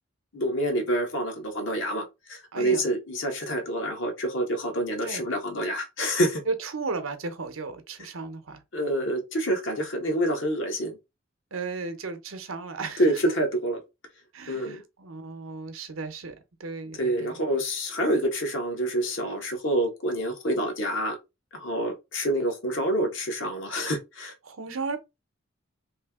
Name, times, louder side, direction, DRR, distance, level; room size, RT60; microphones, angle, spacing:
voice 1, 0.3-6.4 8.7-11.0 13.0-13.8 14.5-14.8 17.0-21.2 21.5-24.3, right 1 dB, 65° left, 1.2 m, -27 dB
voice 2, 2.5-2.8 5.0-5.2 6.5-8.6 11.5-13.4 14.3-16.3 16.6-17.4 24.4-25.0, right 4 dB, 85° right, 0.8 m, -34 dB
3.2 x 2.8 x 3.5 m
head